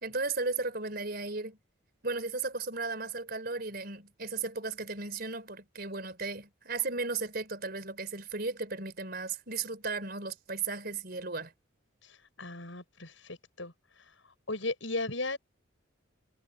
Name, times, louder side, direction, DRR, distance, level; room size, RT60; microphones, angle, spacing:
voice 1, 0.0-1.6 2.0-11.5, right 3 dB, 50° right, 4.5 m, -35 dB
voice 2, 12.0-13.7 14.5-15.4, left 2 dB, 70° left, 7.3 m, -36 dB
head